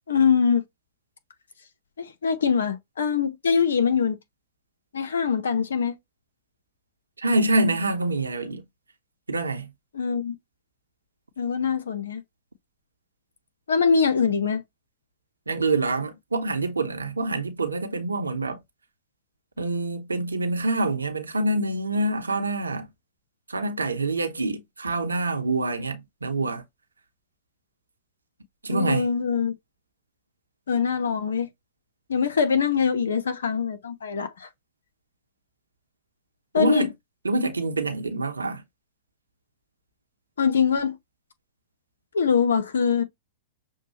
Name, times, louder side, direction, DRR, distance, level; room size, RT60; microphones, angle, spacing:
voice 1, 0.1-0.6 2.0-4.2 4.9-6.0 9.9-10.3 11.4-12.2 13.7-14.6 28.7-29.5 30.7-31.5 32.1-34.5 36.5-36.9 40.4-40.9 42.1-43.0, left 6 dB, 70° left, 0.9 m, -23 dB
voice 2, 7.2-8.6 9.3-9.7 15.5-18.6 19.6-22.9 23.5-26.6 28.6-29.1 36.6-36.9 37.2-38.6, right 2 dB, 80° right, 0.9 m, -26 dB
6.5 x 2.3 x 2.9 m
figure-of-eight pair, 100°, 0 cm